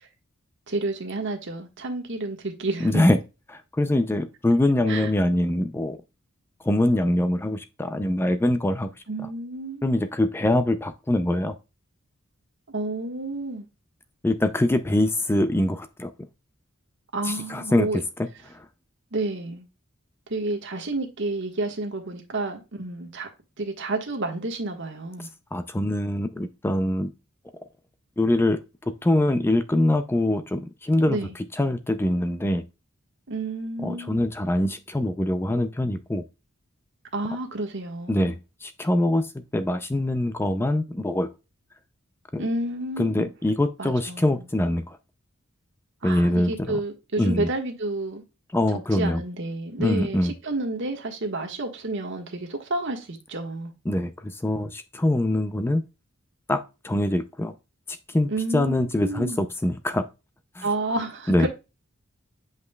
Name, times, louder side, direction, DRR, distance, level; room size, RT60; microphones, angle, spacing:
voice 1, 0.7-3.0 4.9-5.1 9.1-10.0 12.7-13.7 17.1-18.0 19.1-19.6 20.3-23.3 23.6-25.3 31.0-31.3 33.3-34.2 37.1-38.4 42.4-43.3 43.8-44.5 46.0-48.2 48.7-53.7 58.3-59.4 60.6-61.5, right 2 dB, 60° right, 1.4 m, -30 dB
voice 2, 2.8-3.2 3.5-6.0 6.6-8.9 9.8-11.5 14.2-16.1 17.2-18.0 18.5-18.7 25.5-27.1 28.2-31.2 31.6-32.6 33.8-36.2 38.1-39.3 39.5-41.3 42.3-42.4 43.0-45.0 46.0-46.8 47.2-47.5 48.5-49.2 49.8-50.3 53.9-55.8 56.5-57.5 58.1-60.0 60.6-60.7 61.3-61.5, left 1 dB, 10° left, 0.4 m, -23 dB
8.0 x 5.4 x 2.3 m
head